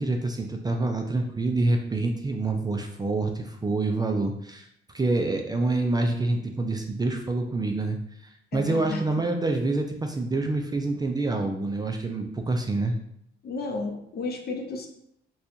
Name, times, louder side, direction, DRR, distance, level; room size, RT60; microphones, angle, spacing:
voice 1, 0.0-4.7 4.9-8.0 8.5-13.0, right 2 dB, 20° right, 3 dB, 0.4 m, -26 dB
voice 2, 8.5-9.0 13.4-14.9, left 3 dB, 55° left, 2 dB, 0.7 m, -32 dB
4.1 x 2.3 x 2.6 m, 0.74 s
cardioid pair, 90°, 20 cm